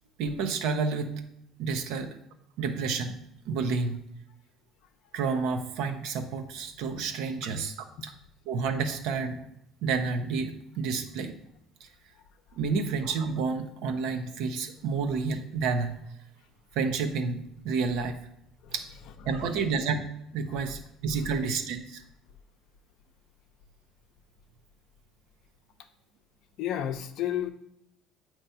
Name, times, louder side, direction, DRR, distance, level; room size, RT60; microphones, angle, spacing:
voice 1, 0.2-1.2 1.6-2.2 2.6-3.2 3.5-4.0 5.1-7.7 8.0-8.1 8.5-9.4 9.8-11.3 11.8-11.9 12.6-15.9 16.7-18.2 18.7-18.9 19.2-20.1 20.3-22.0, right 5 dB, 75° right, 6 dB, 0.8 m, -30 dB
voice 2, 26.6-27.5, left 11 dB, 70° left, 8 dB, 0.6 m, -31 dB
7.7 x 3.0 x 5.5 m, 0.81 s
supercardioid pair, 95°, 0 cm